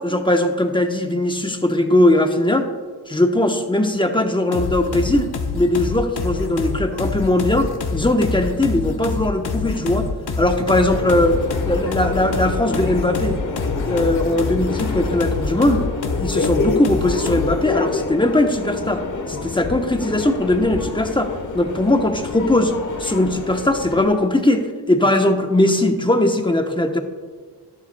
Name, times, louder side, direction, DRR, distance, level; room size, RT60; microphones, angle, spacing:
voice 1, 0.0-2.7 3.1-5.3 5.5-10.1 10.4-11.4 11.7-13.4 13.8-15.9 16.2-19.0 19.3-22.7 23.0-27.0, left 1 dB, 10° left, 5 dB, 1.0 m, -19 dB
sound 1, 4.5-17.7, left 4 dB, 65° left, 1.1 m, -26 dB
Subway metro underground, 10.9-24.0, left 4 dB, 45° left, 1.3 m, -28 dB
12.0 x 11.5 x 2.3 m, 1.5 s
cardioid pair, 75°, 42 cm